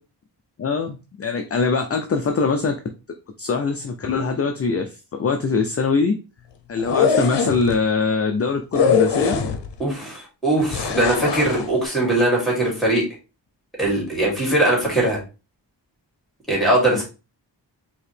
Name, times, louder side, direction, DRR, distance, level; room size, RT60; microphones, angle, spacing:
voice 1, 0.6-2.8 3.4-6.2 6.7-9.3 16.9-17.0, left 4 dB, 35° left, 5 dB, 0.4 m, -22 dB
sound 1, 6.8-7.7 8.7-9.8 10.7-11.7, left 6 dB, 70° left, 0.7 m, -21 dB
voice 2, 9.8-13.0 13.8-15.2 16.5-17.0, right 1 dB, ahead, -3 dB, 2.4 m, -20 dB
4.6 x 3.0 x 3.3 m, 0.31 s
wide cardioid pair, 120°, 43 cm